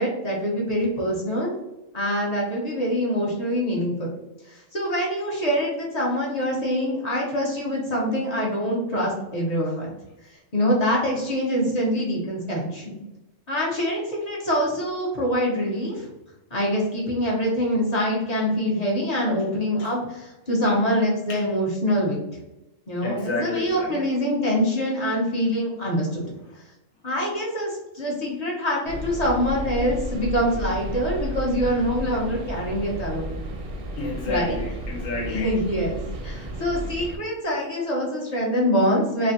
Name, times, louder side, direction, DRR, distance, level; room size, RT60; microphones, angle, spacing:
voice 1, 0.0-1.5 1.9-4.1 4.5-9.9 10.5-13.0 13.5-16.1 16.5-22.4 22.9-26.3 27.0-33.4 34.3-34.6 35.3-39.3, equal, 40° left, -3 dB, 0.7 m, -25 dB
voice 2, 23.0-24.1 33.9-35.6 36.3-36.5, left 2 dB, 85° left, 1 dB, 1.2 m, -31 dB
sound 1, 28.9-37.2, right 1 dB, 60° right, 0.6 m, -33 dB
3.2 x 2.4 x 2.6 m, 0.96 s
omnidirectional pair, 1.4 m